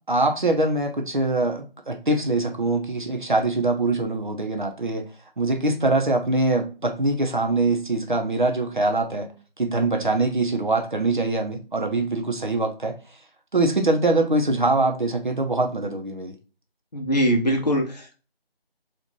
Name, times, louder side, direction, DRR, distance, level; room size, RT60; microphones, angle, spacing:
voice 1, 0.1-5.1 5.4-9.3 9.6-12.9 13.5-16.3, right 2 dB, 55° right, 0.8 m, -23 dB
voice 2, 16.9-18.2, equal, 45° left, 1.0 m, -22 dB
3.9 x 2.5 x 2.9 m
figure-of-eight pair, 175°, 30 cm